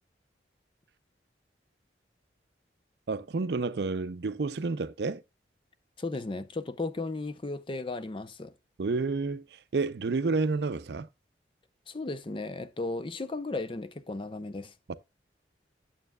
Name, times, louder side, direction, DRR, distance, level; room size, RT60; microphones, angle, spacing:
voice 1, 3.1-5.2 8.8-9.4 9.7-11.1 14.9-15.0, right 3 dB, 65° right, 0.5 m, -30 dB
voice 2, 6.0-8.5 11.9-14.7, left 2 dB, 30° left, 0.5 m, -35 dB
9.1 x 7.3 x 2.2 m
head